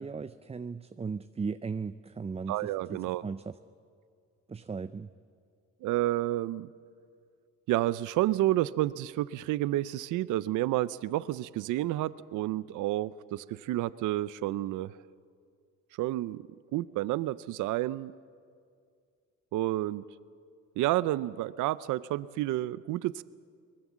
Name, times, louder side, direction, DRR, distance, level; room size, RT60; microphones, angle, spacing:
voice 1, 0.0-2.6 2.9-3.5 4.5-5.1, right 5 dB, 20° right, 12 dB, 0.5 m, -37 dB
voice 2, 2.5-3.2 5.8-6.7 7.7-14.9 16.0-16.5 16.7-18.1 19.5-20.0 20.8-23.2, right 15 dB, 85° right, 17 dB, 0.6 m, -30 dB
23.5 x 20.0 x 7.4 m, 2.2 s
cardioid pair, 90°, 30 cm